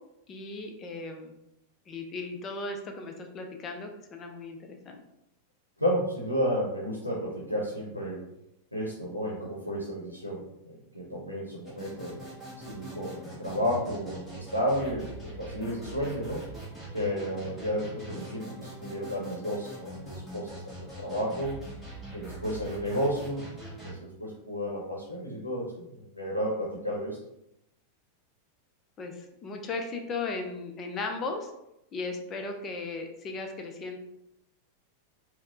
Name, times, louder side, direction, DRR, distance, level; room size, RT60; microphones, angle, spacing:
voice 1, 0.3-1.4 1.9-5.0 29.0-31.5 31.9-34.0, left 3 dB, 25° left, 4 dB, 0.5 m, -36 dB
voice 2, 5.8-8.2 8.7-12.2 12.6-16.5 16.9-21.6 22.1-27.2, equal, 90° left, -5 dB, 0.7 m, -32 dB
sound 1, 11.6-23.9, right 1 dB, 5° left, 1.1 m, -43 dB
4.1 x 2.1 x 2.4 m, 0.83 s
figure-of-eight pair, 90°, 0 cm